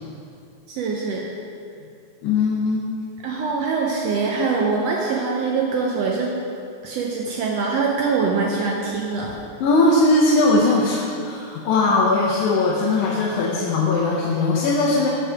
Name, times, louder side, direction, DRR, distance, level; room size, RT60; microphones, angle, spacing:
voice 1, 0.7-1.3 3.2-6.3 6.8-9.4, right 4 dB, 80° right, -1 dB, 1.5 m, -23 dB
voice 2, 2.2-2.8 9.6-15.1, left 2 dB, 85° left, -4 dB, 2.2 m, -19 dB
6.1 x 5.6 x 5.8 m, 2.5 s
omnidirectional pair, 3.4 m